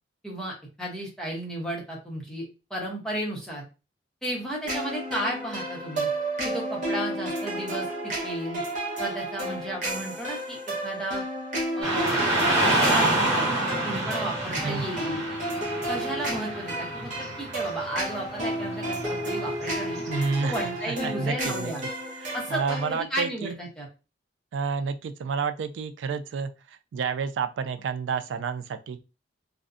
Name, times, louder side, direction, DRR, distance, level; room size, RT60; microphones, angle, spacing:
voice 1, 0.2-2.4 2.7-3.7 4.2-6.1 6.4-7.9 8.2-8.6 9.0-10.6 10.8-11.2 11.8-12.1 12.5-15.2 15.9-20.0 20.4-21.8 22.3-23.9, right 1 dB, 5° left, -3 dB, 0.7 m, -33 dB
sound 1, 4.7-23.0, right 1 dB, 45° right, 0.8 m, -32 dB
Car passing by / Traffic noise roadway noise, 11.8-20.8, right 2 dB, 20° right, 1.2 m, -28 dB
voice 2, 14.6-15.0 20.1-21.7 22.2-23.5 24.5-29.0, right 5 dB, 80° right, 10 dB, 0.3 m, -30 dB
2.5 x 2.0 x 2.4 m, 0.30 s
head